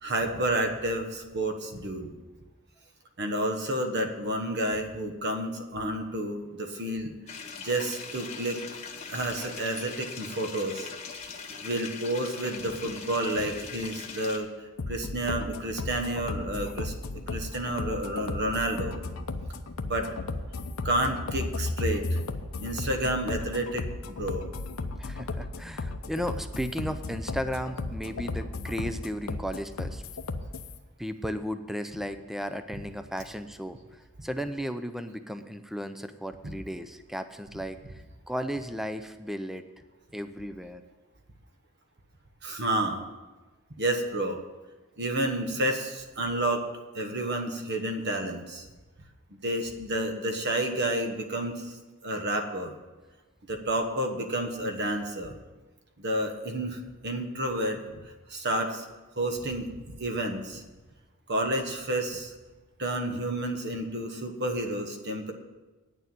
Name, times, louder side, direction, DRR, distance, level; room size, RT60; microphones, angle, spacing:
voice 1, 0.0-2.1 3.2-7.1 7.6-8.6 9.1-10.9 11.6-14.5 14.9-16.9 17.3-19.0 19.9-20.1 20.8-22.2 22.6-24.5 36.4-36.5 42.4-43.0 43.8-44.4 45.0-46.6 46.9-48.7 49.4-51.7 52.0-52.7 53.5-55.4 56.0-57.8 58.3-58.8 59.2-59.7 60.0-60.6 61.3-62.3 62.8-65.3, right 1 dB, 55° right, 5 dB, 1.3 m, -30 dB
sound 1, 7.3-14.4, left 5 dB, 30° left, 1.2 m, -41 dB
sound 2, 14.8-30.8, left 2 dB, 75° left, 0.7 m, -35 dB
voice 2, 25.0-30.0 31.0-33.8 34.2-37.8 38.3-39.6 40.1-40.8, equal, ahead, 9 dB, 0.5 m, -35 dB
9.4 x 6.8 x 8.7 m, 1.2 s
head